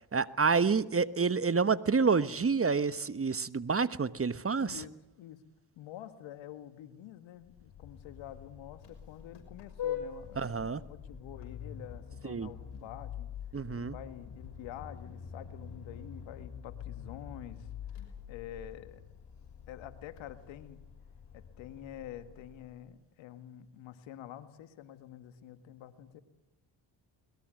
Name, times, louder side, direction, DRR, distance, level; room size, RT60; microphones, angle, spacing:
voice 1, 0.0-4.8 10.4-10.8 12.2-12.5 13.5-13.9, right 5 dB, 30° right, 15 dB, 1.2 m, -28 dB
voice 2, 4.6-5.4 5.8-13.3 13.7-17.7 18.0-19.0 19.7-20.8 21.3-26.2, left 11 dB, 85° left, 11 dB, 1.9 m, -48 dB
Vehicle horn car horn honking, 7.4-22.8, left 8 dB, 65° left, 6.2 m, -45 dB
22.5 x 21.0 x 7.8 m, 0.95 s
supercardioid pair, 55°, 45 cm